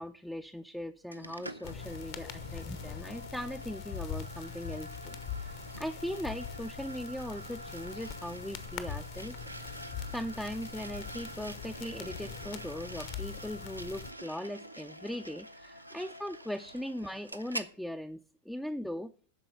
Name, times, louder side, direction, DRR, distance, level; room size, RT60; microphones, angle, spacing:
voice 1, 0.0-9.4 9.7-19.1, equal, 5° left, 8 dB, 0.4 m, -39 dB
sound 1, 1.1-17.7, right 1 dB, 85° right, 0.6 m, -46 dB
sound 2, 1.6-14.1, left 7 dB, 45° left, 1.0 m, -43 dB
12.5 x 4.4 x 7.3 m, 0.43 s
figure-of-eight pair, 90°, 0 cm